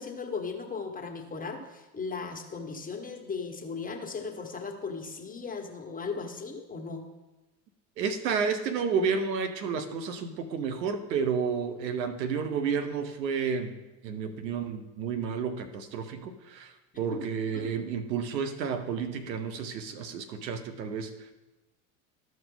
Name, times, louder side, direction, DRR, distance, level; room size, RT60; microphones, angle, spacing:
voice 1, 0.0-7.0 17.1-17.2 17.5-17.6, left 4 dB, 15° left, 2 dB, 1.4 m, -37 dB
voice 2, 8.0-13.8 14.0-21.3, right 6 dB, 90° right, 9 dB, 1.0 m, -31 dB
14.0 x 5.1 x 3.9 m, 1.1 s
hypercardioid pair, 85°, 49 cm